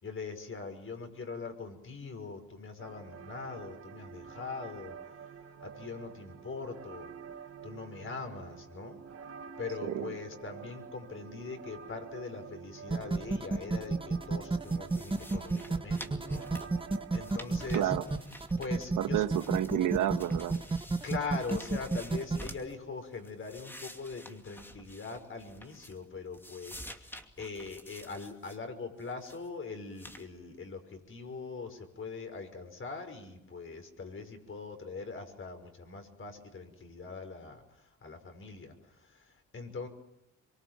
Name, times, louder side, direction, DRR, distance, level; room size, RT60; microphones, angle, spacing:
voice 1, 0.0-7.1 7.6-9.0 9.6-16.9 17.1-17.9 18.6-19.2 21.0-39.9, left 4 dB, 45° left, 6 dB, 5.7 m, -42 dB
sound 1, 2.8-18.8, right 7 dB, 50° right, 2.1 m, -48 dB
sound 2, 12.9-22.5, right 3 dB, 15° right, 1.6 m, -31 dB
sound 3, 14.6-18.9 19.1-22.7 23.1-26.1 26.3-28.6 29.0-29.5 29.9-30.3, equal, 5° left, 2.5 m, -50 dB
voice 2, 17.7-18.0 19.0-20.6, right 11 dB, 80° right, 8 dB, 1.7 m, -30 dB
25.0 x 23.5 x 7.6 m, 0.85 s
cardioid pair, 90°, 30 cm